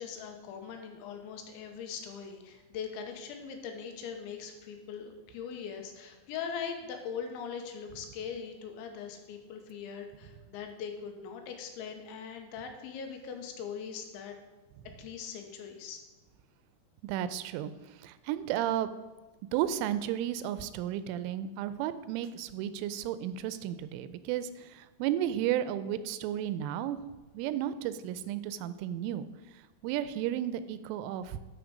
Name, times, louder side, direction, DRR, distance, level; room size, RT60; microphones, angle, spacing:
voice 1, 0.0-14.4 15.0-16.0, left 6 dB, 80° left, 4 dB, 3.2 m, -41 dB
voice 2, 17.0-18.9 19.5-27.0 27.3-29.3 29.5-31.4, right 11 dB, 90° right, 13 dB, 3.1 m, -33 dB
11.5 x 5.2 x 5.1 m, 1.2 s
omnidirectional pair, 5.5 m